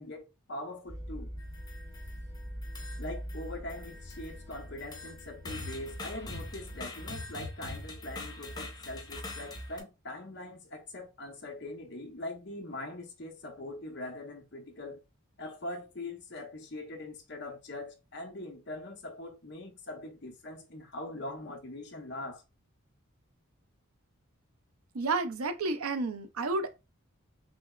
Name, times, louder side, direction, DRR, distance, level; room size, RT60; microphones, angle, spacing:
voice 1, 0.0-1.3 3.0-15.0 15.4-22.4, left 1 dB, 50° left, 0.9 m, -42 dB
sound 1, 0.9-6.8, equal, 15° right, 0.9 m, -43 dB
sound 2, 1.4-2.2 2.6-3.4 3.7-9.8, left 2 dB, 20° left, 0.5 m, -43 dB
voice 2, 24.9-26.8, right 3 dB, 80° right, 0.6 m, -31 dB
6.0 x 2.0 x 2.4 m
head